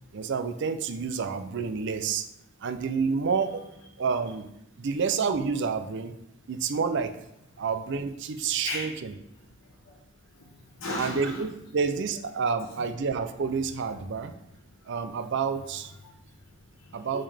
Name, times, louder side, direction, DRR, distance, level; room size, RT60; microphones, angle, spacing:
voice 1, 0.1-2.3 2.6-3.6 4.0-4.5 4.8-6.2 6.5-7.2 7.6-9.1 10.9-14.3 14.9-15.9 16.9-17.2, right 5 dB, 60° right, 9 dB, 0.5 m, -29 dB
voice 2, 9.6-10.0 10.3-11.5 14.8-14.9 16.0-17.2, left 2 dB, 75° left, -1 dB, 1.1 m, -38 dB
5.5 x 5.1 x 3.4 m, 0.84 s
head